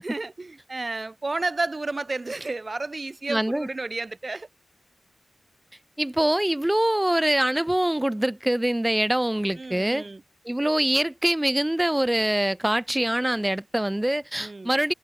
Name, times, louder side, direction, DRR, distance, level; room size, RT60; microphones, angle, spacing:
voice 1, 0.0-4.5 9.6-10.2 14.4-14.7, right 3 dB, 25° right, 7.4 m, -31 dB
voice 2, 3.3-3.7 6.0-10.0 10.5-14.9, right 1 dB, 10° right, 5.3 m, -24 dB
wide cardioid pair, 175°, 0 cm